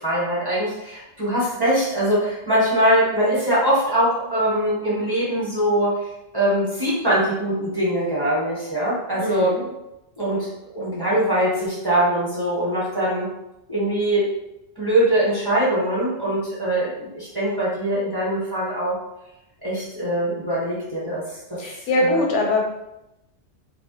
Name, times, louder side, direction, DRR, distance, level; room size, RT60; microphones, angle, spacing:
voice 1, 0.0-5.9 6.3-9.5 10.2-13.3 13.7-14.2 14.8-18.9 19.6-21.2 21.5-21.6 22.1-22.2, right 1 dB, 25° right, -9 dB, 0.7 m, -22 dB
voice 2, 9.2-9.6 21.6-22.6, left 2 dB, 90° left, 1 dB, 0.9 m, -22 dB
2.2 x 2.1 x 2.8 m, 0.89 s
omnidirectional pair, 1.2 m